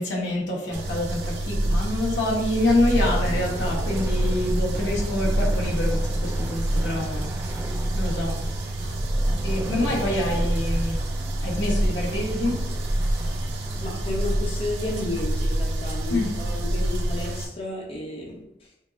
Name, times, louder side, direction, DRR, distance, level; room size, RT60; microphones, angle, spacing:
voice 1, 0.0-7.4 7.9-8.5 9.4-11.0 11.4-12.8 16.1-16.3, left 1 dB, 90° left, 1.2 m, -26 dB
sound 1, 0.7-17.5, right 1 dB, 80° right, 0.7 m, -27 dB
sound 2, 2.6-13.9, right 1 dB, 10° right, 0.4 m, -33 dB
voice 2, 13.8-18.7, left 2 dB, 35° left, 0.8 m, -32 dB
5.3 x 2.0 x 3.7 m
head